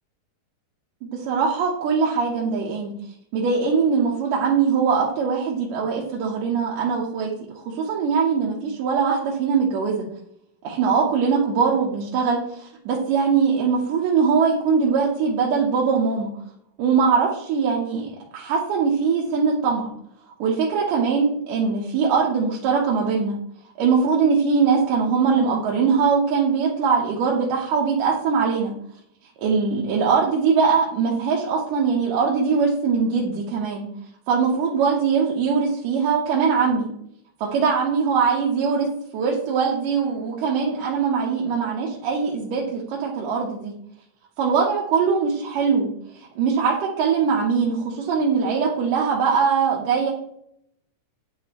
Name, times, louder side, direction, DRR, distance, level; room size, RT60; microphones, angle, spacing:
voice 1, 1.0-2.9 3.3-10.1 10.6-16.3 16.8-19.9 20.4-23.4 23.8-28.7 29.4-33.9 34.3-36.9 37.4-38.9 39.1-43.7 44.4-45.9 46.1-50.1, right 5 dB, 80° right, -2 dB, 2.4 m, -21 dB
9.4 x 3.9 x 2.9 m, 0.73 s
omnidirectional pair, 3.7 m